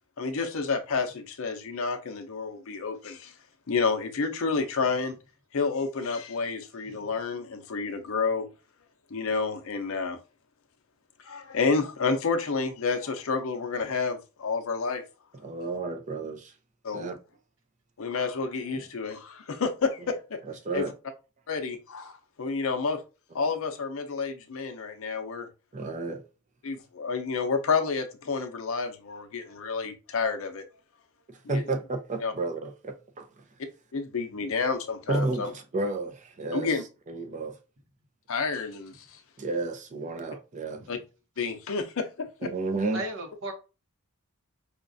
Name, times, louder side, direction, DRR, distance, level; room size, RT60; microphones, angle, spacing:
voice 1, 0.2-3.3 3.7-5.2 5.5-8.5 9.1-10.2 11.2-15.0 16.8-17.1 18.0-20.4 20.7-20.9 21.5-23.0 23.3-25.5 26.6-30.6 31.4-31.6 32.2-32.3 33.9-35.5 36.5-36.8 38.3-39.2 40.9-41.0 41.4-42.5, left 4 dB, 65° left, 0.6 m, -29 dB
voice 2, 15.4-16.5 16.9-17.1 20.6-20.9 25.7-26.2 31.3-33.3 35.1-36.7 37.1-37.6 39.4-40.8 42.4-43.0, right 2 dB, 35° right, 0.5 m, -31 dB
voice 3, 42.9-43.5, right 2 dB, 60° right, 0.9 m, -35 dB
5.0 x 2.3 x 2.5 m
head